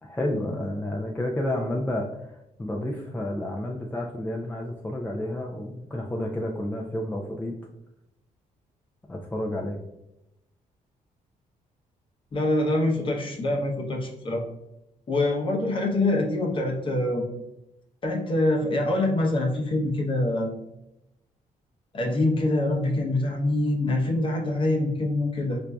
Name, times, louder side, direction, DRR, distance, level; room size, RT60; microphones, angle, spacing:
voice 1, 0.0-7.5 9.1-9.8, left 1 dB, 10° left, 0 dB, 0.3 m, -30 dB
voice 2, 12.3-14.4 15.1-17.2 18.0-20.5 21.9-25.6, left 2 dB, 35° left, 0 dB, 0.7 m, -25 dB
4.3 x 2.5 x 2.2 m, 0.87 s
cardioid pair, 115°, 15 cm